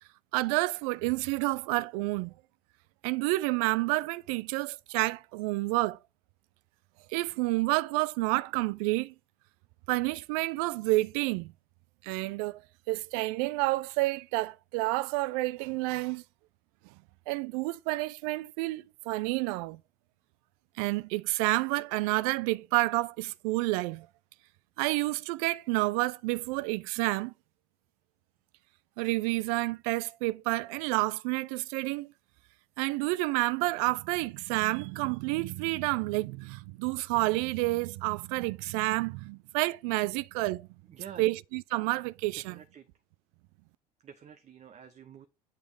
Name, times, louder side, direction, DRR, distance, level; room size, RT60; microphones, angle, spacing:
voice 1, 0.3-2.3 3.0-6.0 7.1-9.1 9.9-11.5 12.0-12.6 12.9-16.2 17.3-19.8 20.8-24.1 24.8-27.3 29.0-32.1 32.8-40.7 41.2-42.6, right 21 dB, 60° right, 0.4 m, -29 dB
voice 2, 40.9-41.3 42.4-42.9 44.0-45.3, right 8 dB, 35° right, 0.8 m, -48 dB
8.1 x 3.3 x 4.8 m
hypercardioid pair, 70°, 21 cm